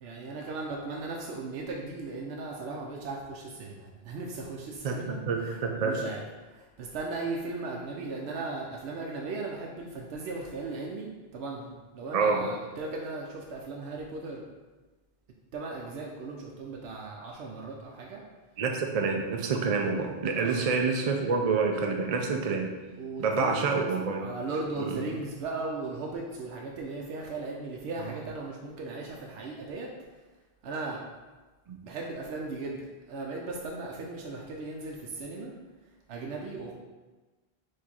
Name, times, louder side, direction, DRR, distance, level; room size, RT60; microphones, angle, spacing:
voice 1, 0.0-6.2 6.5-14.5 15.5-18.2 20.3-20.6 23.0-23.6 24.2-29.9 30.6-31.0 31.8-35.5 36.1-36.7, right 3 dB, 85° right, -1 dB, 0.8 m, -37 dB
voice 2, 4.8-6.1 12.1-12.5 18.6-22.7 23.2-24.3 24.8-24.9 31.7-31.8, right 4 dB, 50° right, 2 dB, 0.5 m, -27 dB
4.6 x 2.6 x 4.2 m, 1.2 s
omnidirectional pair, 1.1 m